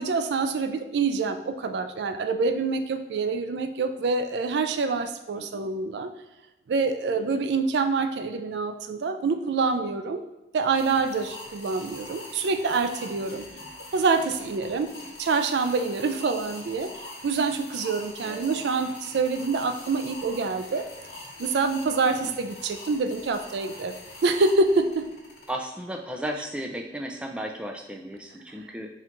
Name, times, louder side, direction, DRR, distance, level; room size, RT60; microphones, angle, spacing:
voice 1, 0.0-6.1 6.7-10.2 10.5-13.4 13.9-14.9 15.2-16.9 17.2-20.8 21.4-23.9 24.2-25.1, right 4 dB, 80° right, 8 dB, 0.4 m, -26 dB
voice 2, 5.3-5.7 7.2-7.4 13.2-13.7 14.9-15.1 18.2-18.5 22.2-22.3 25.5-28.9, right 1 dB, 5° right, 3 dB, 0.3 m, -36 dB
sound 1, 10.8-25.5, left 2 dB, 70° left, 1.2 m, -43 dB
4.4 x 2.4 x 3.8 m, 1.0 s
head